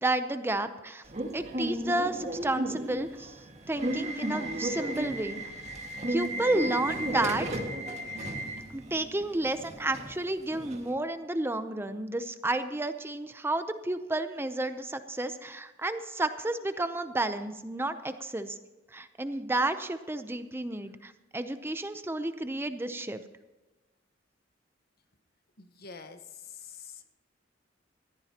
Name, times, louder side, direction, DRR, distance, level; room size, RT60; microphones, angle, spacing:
voice 1, 0.0-1.0 1.3-3.4 3.6-5.4 6.1-7.5 8.7-18.6 18.9-23.2, right 2 dB, 15° right, 10 dB, 0.6 m, -31 dB
Subway metro underground / Alarm, 1.1-10.9, right 1 dB, 40° right, 1.8 m, -34 dB
voice 2, 25.6-27.2, left 6 dB, 55° left, 8 dB, 1.2 m, -47 dB
19.5 x 14.5 x 2.9 m, 1.2 s
head